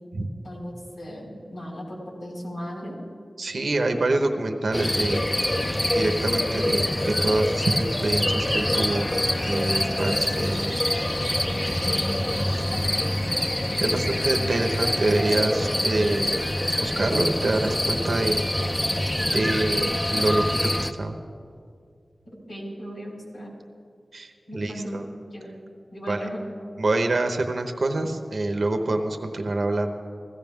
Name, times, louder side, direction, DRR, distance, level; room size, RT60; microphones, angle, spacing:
voice 1, 0.4-3.0 11.6-12.9 22.5-23.5 24.5-25.0 25.3-25.5 25.9-26.4, equal, 90° left, -4 dB, 3.9 m, -37 dB
voice 2, 3.4-5.2 5.9-9.1 9.4-10.8 13.5-18.4 19.2-21.2 24.1-25.0 26.1-26.2 26.8-29.9, right 2 dB, 75° right, 5 dB, 0.8 m, -26 dB
sound 1, 4.7-20.9, left 1 dB, 25° left, 0.6 m, -25 dB
16.0 x 14.0 x 3.6 m, 2.2 s
cardioid pair, 50°, 0 cm